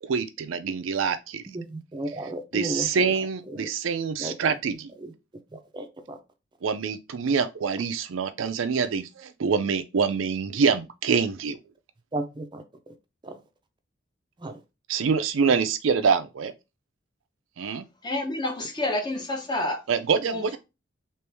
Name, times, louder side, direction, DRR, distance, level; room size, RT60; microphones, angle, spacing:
voice 1, 0.0-1.4 2.5-4.9 6.6-11.6 14.9-16.5 17.6-17.8 19.9-20.6, right 5 dB, 85° right, 0.4 m, -25 dB
voice 2, 1.5-2.9 3.6-3.7 4.2-4.5 5.5-6.2 12.1-12.6 13.2-13.4 14.4-14.6, right 1 dB, 25° right, 0.5 m, -33 dB
voice 3, 18.0-19.8 20.2-20.6, left 1 dB, 25° left, 0.8 m, -29 dB
3.1 x 3.0 x 3.4 m
head